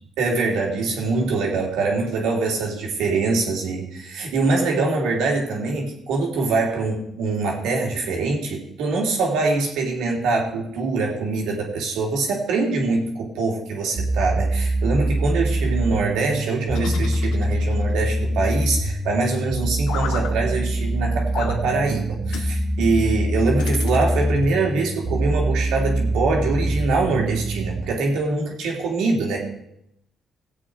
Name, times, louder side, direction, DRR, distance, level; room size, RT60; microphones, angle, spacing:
voice 1, 0.2-29.4, right 3 dB, 90° right, 0 dB, 3.1 m, -23 dB
sound 1, 14.0-27.8, right 1 dB, 45° right, 1.9 m, -24 dB
sound 2, 16.7-17.9 19.9-20.3 21.3-21.6 22.3-22.5 23.6-24.4, left 7 dB, 90° left, 1.2 m, -33 dB
18.5 x 8.3 x 4.8 m, 0.78 s
cardioid pair, 90°, 0 cm